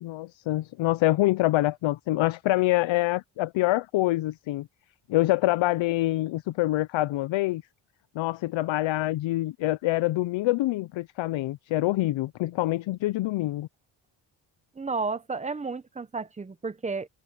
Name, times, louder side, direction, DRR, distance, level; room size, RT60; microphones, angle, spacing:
voice 1, 0.0-4.7 5.1-7.6 8.1-13.7, left 17 dB, 70° left, 0.6 m, -25 dB
voice 2, 14.8-17.1, right 4 dB, 15° right, 0.8 m, -32 dB
wide cardioid pair, 170°, 47 cm